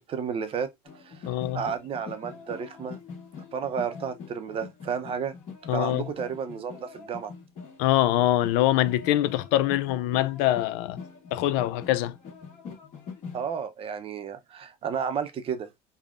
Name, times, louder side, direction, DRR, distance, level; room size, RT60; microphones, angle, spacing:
voice 1, 0.0-1.3 1.5-3.0 3.5-5.4 5.7-7.3 13.3-15.7, right 7 dB, 35° right, 0.6 m, -32 dB
sound 1, 0.9-13.5, left 5 dB, 50° left, 1.4 m, -44 dB
voice 2, 1.3-1.6 5.7-6.1 7.8-11.0 11.3-12.1, left 14 dB, 75° left, 0.4 m, -24 dB
3.4 x 2.2 x 2.4 m
supercardioid pair, 115°, 15 cm